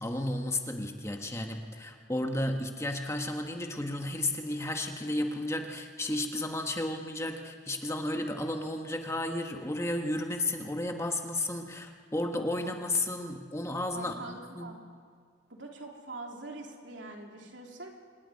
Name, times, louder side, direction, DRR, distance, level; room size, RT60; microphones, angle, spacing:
voice 1, 0.0-14.8, left 1 dB, 15° left, 4 dB, 1.4 m, -33 dB
voice 2, 13.9-14.8 15.5-17.9, right 2 dB, 85° right, 1 dB, 3.2 m, -44 dB
26.5 x 10.5 x 9.8 m, 2.1 s
head